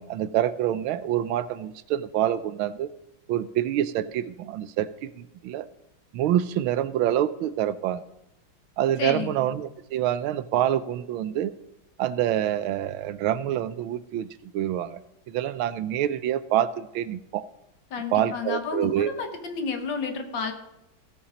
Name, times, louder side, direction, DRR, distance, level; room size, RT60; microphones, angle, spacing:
voice 1, 0.0-2.9 3.3-5.7 6.1-8.0 8.8-11.5 12.0-15.0 15.3-17.5 18.1-19.1, right 11 dB, 85° right, 15 dB, 1.5 m, -26 dB
voice 2, 9.0-9.4 17.9-20.5, left 5 dB, 65° left, 6 dB, 2.1 m, -31 dB
16.5 x 7.1 x 5.2 m, 0.88 s
omnidirectional pair, 2.2 m